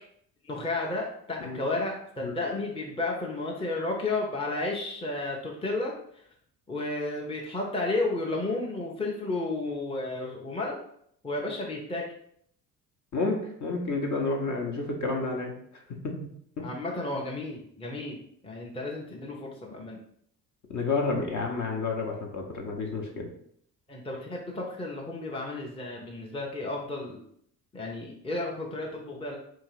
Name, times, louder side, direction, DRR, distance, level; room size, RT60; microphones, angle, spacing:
voice 1, 0.4-5.9 6.7-10.8 11.2-12.0 16.6-18.2 18.4-20.0 23.9-27.2 27.7-29.4, left 2 dB, 10° left, -2 dB, 0.8 m, -32 dB
voice 2, 13.1-15.5 16.0-16.1 16.6-16.7 20.7-23.3, left 3 dB, 35° left, 1 dB, 1.1 m, -30 dB
3.7 x 2.7 x 4.7 m, 0.67 s
figure-of-eight pair, 50°, 49 cm